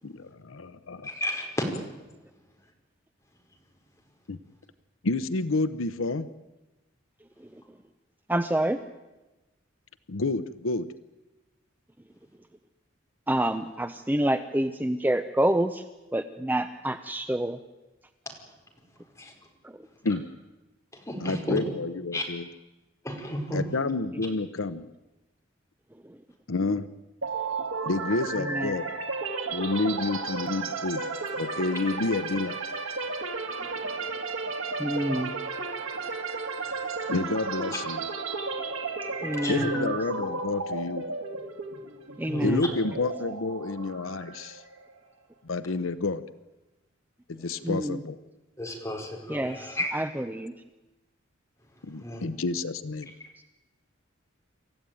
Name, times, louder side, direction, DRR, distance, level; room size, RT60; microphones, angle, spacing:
voice 1, 0.0-1.1 4.3-4.4 5.0-6.3 10.1-10.9 20.0-20.2 21.2-22.5 23.5-24.9 26.5-26.9 27.9-28.9 29.5-31.0 31.4-32.6 37.1-38.1 39.5-41.1 42.4-44.6 45.4-46.2 47.3-48.1 51.8-53.1, left 3 dB, 85° left, 13 dB, 0.8 m, -29 dB
voice 2, 1.0-1.4 19.2-19.3 21.1-21.6 22.1-22.2 23.0-23.6 35.0-35.2 39.4-39.6 42.3-42.6 48.8-49.9 52.0-52.2, left 1 dB, 15° left, 1 dB, 4.9 m, -32 dB
voice 3, 8.3-8.8 13.3-15.8 16.1-17.6 19.6-19.9 26.0-26.2 28.4-28.8 33.6-33.7 34.8-35.3 39.2-40.3 42.2-42.7 47.6-48.0 49.3-50.5, right 1 dB, 10° right, 9 dB, 0.7 m, -28 dB
sound 1, 27.2-45.0, right 3 dB, 90° right, 2.6 m, -33 dB
28.0 x 14.5 x 9.3 m, 1.1 s
head